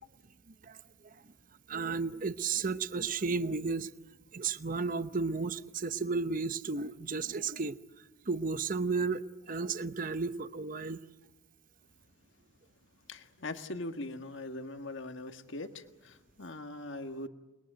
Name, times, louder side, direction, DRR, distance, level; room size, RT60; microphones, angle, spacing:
voice 1, 1.7-3.9 4.3-7.8 8.3-11.0, right 4 dB, 40° right, 13 dB, 0.8 m, -33 dB
voice 2, 13.1-17.3, left 2 dB, 60° left, 8 dB, 1.6 m, -41 dB
29.5 x 21.5 x 9.2 m, 1.1 s
head